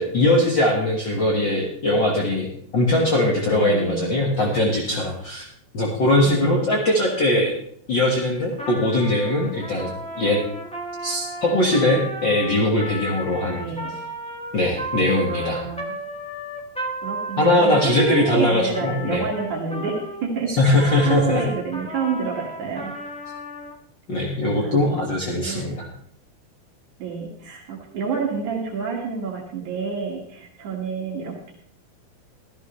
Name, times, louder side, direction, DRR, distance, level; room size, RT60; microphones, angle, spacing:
voice 1, 0.0-5.5 5.7-7.5 7.9-10.4 11.0-13.7 14.5-15.6 17.4-19.2 20.5-21.4 24.1-25.9, left 1 dB, 40° left, -2 dB, 2.1 m, -21 dB
voice 2, 3.5-4.3 6.2-6.7 13.6-14.0 15.3-16.0 17.0-22.9 24.6-24.9 25.4-25.8 27.0-31.5, right 5 dB, 75° right, -2 dB, 3.5 m, -29 dB
Trumpet, 8.5-20.3 20.8-23.8, equal, 5° left, 0.7 m, -34 dB
15.5 x 14.0 x 3.3 m, 0.67 s
omnidirectional pair, 3.5 m